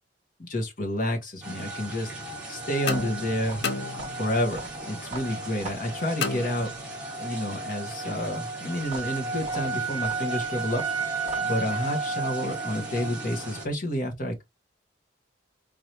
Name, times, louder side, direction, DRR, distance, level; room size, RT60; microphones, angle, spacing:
voice 1, 0.4-2.1 2.5-3.6 4.2-6.7 7.1-10.8 11.4-14.4, left 1 dB, 45° left, 1.2 m, -29 dB
sound 1, 1.4-13.6, right 3 dB, 5° right, 1.7 m, -33 dB
sound 2, 2.9-4.5 6.2-7.2, left 4 dB, 65° left, 0.7 m, -33 dB
sound 3, 2.9-7.1 8.8-11.7, right 3 dB, 35° right, 1.5 m, -42 dB
3.7 x 3.2 x 2.9 m
head